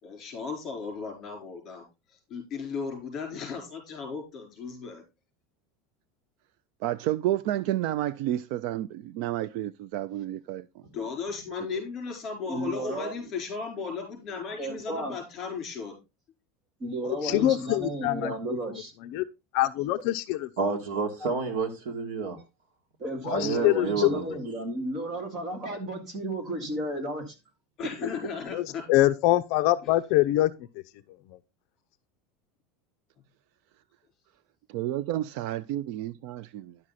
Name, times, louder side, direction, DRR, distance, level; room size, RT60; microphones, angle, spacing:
voice 1, 0.0-1.8 2.1-5.0 10.9-16.0 17.2-17.5 23.4-23.6 27.8-28.9 29.8-29.9, left 5 dB, 30° left, 4.4 m, -36 dB
voice 2, 6.8-10.7 34.7-36.8, right 13 dB, 50° right, 0.4 m, -30 dB
voice 3, 12.5-13.1 14.6-15.2 16.8-18.9 23.0-27.4, right 1 dB, 30° right, 2.3 m, -33 dB
voice 4, 17.0-18.3 19.1-19.2 19.5-20.5 23.2-24.1 28.5-30.5, left 16 dB, 50° left, 0.5 m, -24 dB
voice 5, 20.6-22.4 23.3-24.3, right 4 dB, 70° right, 2.4 m, -29 dB
11.0 x 6.2 x 4.1 m
supercardioid pair, 175°, 0 cm